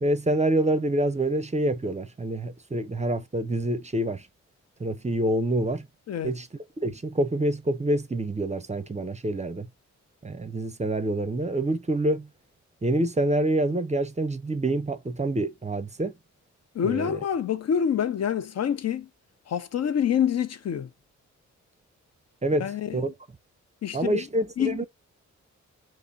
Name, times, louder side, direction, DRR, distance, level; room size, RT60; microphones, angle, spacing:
voice 1, 0.0-4.2 4.8-5.8 6.2-6.5 6.8-9.7 10.2-12.3 12.8-16.1 16.8-17.2 22.4-23.1 23.9-24.9, right 1 dB, 25° right, 0.6 m, -26 dB
voice 2, 16.7-19.1 19.5-20.9 22.6-23.1 23.8-24.2 24.6-24.8, left 8 dB, 60° left, 0.5 m, -27 dB
5.0 x 2.0 x 2.4 m
cardioid pair, 60°, 30 cm